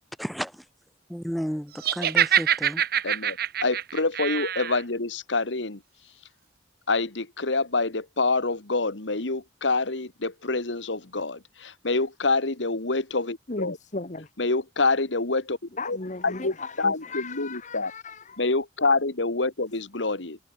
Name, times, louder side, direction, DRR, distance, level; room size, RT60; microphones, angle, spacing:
voice 1, 0.2-0.6 1.1-2.8, equal, ahead, 2.2 m, -32 dB
Laughter, 1.8-4.8, right 9 dB, 55° right, 1.0 m, -25 dB
voice 2, 3.0-5.8 6.9-13.8 14.4-15.6 15.9-16.0 16.2-17.9 18.4-20.4, left 3 dB, 90° left, 1.9 m, -26 dB
voice 3, 13.5-14.3 15.7-18.4, left 3 dB, 40° left, 1.3 m, -36 dB
head